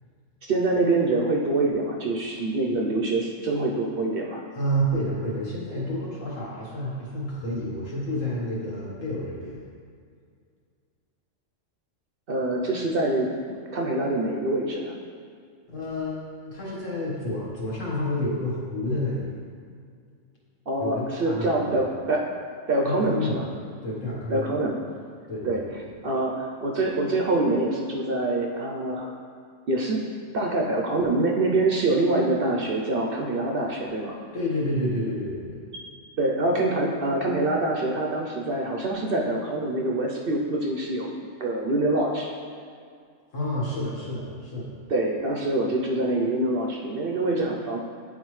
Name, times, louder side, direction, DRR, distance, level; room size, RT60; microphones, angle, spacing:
voice 1, 0.5-4.4 12.3-14.9 20.7-22.2 22.7-23.5 24.3-24.8 25.4-25.6 26.0-29.1 29.7-30.0 30.3-34.2 36.2-42.3 44.9-47.8, right 2 dB, 55° right, 0 dB, 0.7 m, -25 dB
voice 2, 4.6-9.6 15.7-19.3 20.8-21.8 22.8-23.4 23.8-24.5 25.3-25.7 34.3-35.6 43.3-44.7, equal, 75° left, -5 dB, 1.7 m, -29 dB
9.3 x 3.9 x 3.1 m, 2.2 s
omnidirectional pair, 1.3 m